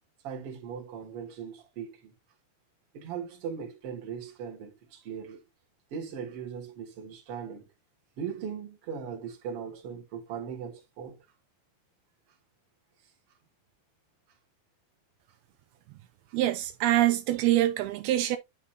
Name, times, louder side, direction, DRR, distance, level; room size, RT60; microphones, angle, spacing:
voice 1, 0.2-2.1 2.9-5.4 5.9-7.7 8.2-11.2, right 7 dB, 45° right, 2.4 m, -39 dB
voice 2, 16.3-18.4, right 14 dB, 85° right, 2.5 m, -25 dB
10.5 x 4.2 x 2.6 m
omnidirectional pair, 4.6 m